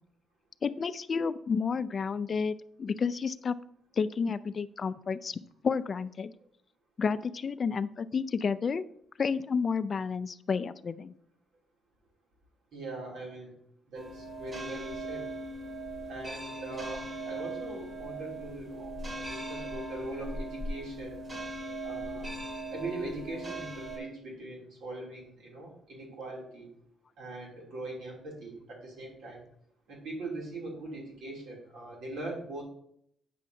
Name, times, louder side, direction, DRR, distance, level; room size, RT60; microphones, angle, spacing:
voice 1, 0.6-3.6 3.9-6.3 7.0-8.8 9.2-11.1, left 5 dB, 45° left, 15 dB, 0.3 m, -31 dB
voice 2, 12.7-13.5 13.9-15.3 16.1-21.2 21.8-22.3 22.7-26.7 27.2-29.4 29.9-32.6, right 2 dB, 75° right, -2 dB, 2.7 m, -41 dB
sound 1, 13.9-24.0, right 1 dB, 40° right, 2.2 m, -39 dB
8.4 x 6.4 x 2.6 m, 0.69 s
cardioid pair, 90°, 0 cm